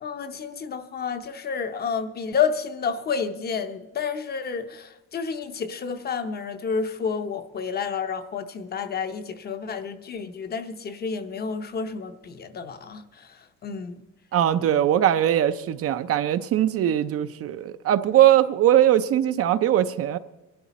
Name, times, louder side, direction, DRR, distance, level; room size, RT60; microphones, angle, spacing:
voice 1, 0.0-13.0 13.6-13.9, left 6 dB, 30° left, 0.7 m, -30 dB
voice 2, 14.3-20.2, right 11 dB, 45° right, 0.5 m, -20 dB
22.5 x 12.5 x 4.1 m
cardioid pair, 175°, 31 cm